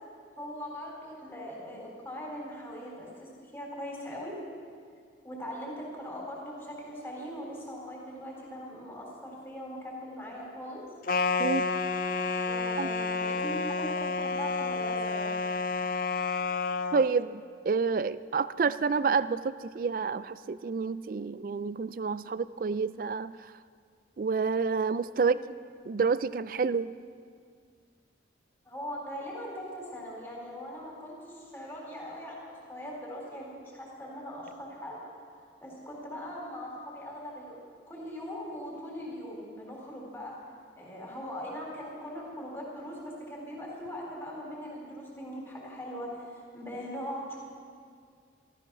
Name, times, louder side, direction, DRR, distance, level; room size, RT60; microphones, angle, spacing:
voice 1, 0.4-4.4 5.2-10.8 12.4-15.3 25.2-25.4 28.6-35.0 35.6-37.6 37.9-40.4 40.8-47.4, equal, 15° left, -3 dB, 3.5 m, -40 dB
sound 1, 11.1-17.0, left 4 dB, 50° left, 0.5 m, -30 dB
voice 2, 16.9-23.3 24.2-25.4 25.8-26.9, right 5 dB, 50° right, 16 dB, 0.3 m, -29 dB
13.5 x 13.5 x 6.1 m, 2.1 s
head